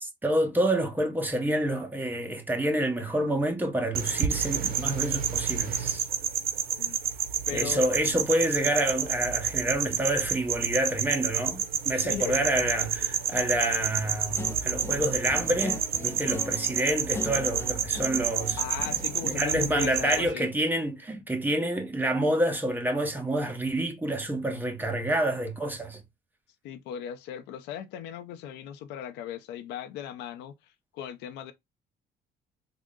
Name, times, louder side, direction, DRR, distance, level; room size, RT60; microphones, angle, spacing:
voice 1, 0.0-6.0 7.5-18.6 19.2-26.0, right 1 dB, 10° right, 0.9 m, -28 dB
sound 1, 3.9-20.3, right 8 dB, 60° right, 0.7 m, -29 dB
voice 2, 7.5-7.8 11.9-12.3 18.6-20.5 26.6-31.5, left 10 dB, 90° left, 0.6 m, -38 dB
Guitar, 14.3-20.2, left 3 dB, 15° left, 0.4 m, -40 dB
3.6 x 2.1 x 3.6 m
cardioid pair, 110°, 17 cm